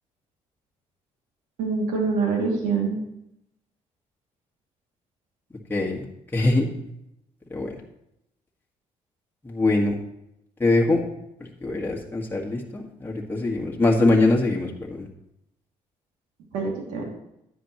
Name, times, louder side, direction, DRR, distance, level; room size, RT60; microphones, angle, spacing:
voice 1, 1.6-3.0 16.5-17.0, right 4 dB, 90° right, -1 dB, 2.6 m, -25 dB
voice 2, 5.7-6.0 6.3-6.7 7.5-7.7 9.5-10.0 10.6-11.0 11.4-15.0, left 2 dB, 15° left, -2 dB, 1.8 m, -22 dB
10.0 x 9.4 x 3.1 m, 0.82 s
supercardioid pair, 75°, 13 cm